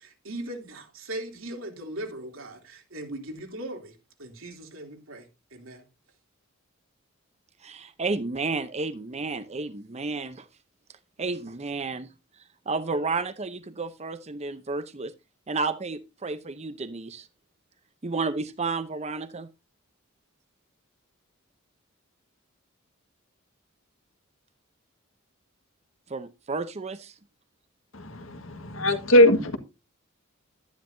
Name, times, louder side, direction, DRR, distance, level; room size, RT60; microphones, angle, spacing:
voice 1, 0.0-5.9, right 1 dB, 80° right, 3.0 m, -39 dB
voice 2, 7.6-10.5 11.2-12.1 12.7-15.1 15.5-17.3 18.0-19.5 26.1-27.1, right 3 dB, 30° right, 0.7 m, -31 dB
voice 3, 27.9-29.6, left 1 dB, 75° left, 1.7 m, -20 dB
12.5 x 10.5 x 2.7 m
head